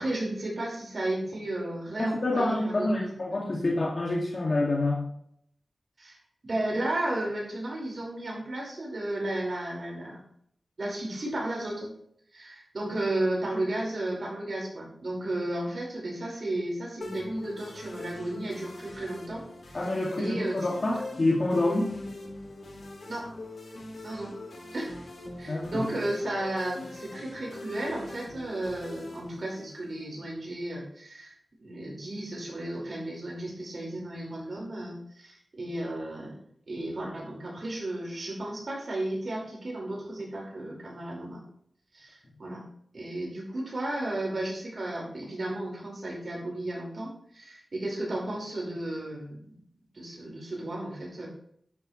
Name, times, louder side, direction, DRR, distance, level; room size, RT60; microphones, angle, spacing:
voice 1, 0.0-3.2 6.0-6.2 6.4-10.2 10.8-11.9 12.3-19.4 19.7-19.9 20.2-20.5 23.1-23.3 24.0-24.3 24.7-25.0 25.4-36.4 36.7-41.4 41.9-42.6 42.9-49.5 49.9-51.3, right 1 dB, 55° right, -2 dB, 5.2 m, -33 dB
voice 2, 2.0-5.0 19.7-21.9 25.5-25.9, left 2 dB, 45° left, -3 dB, 2.4 m, -27 dB
sound 1, 17.0-30.0, left 2 dB, 70° left, 4.0 m, -42 dB
11.5 x 11.5 x 3.3 m, 0.69 s
wide cardioid pair, 95°, 0 cm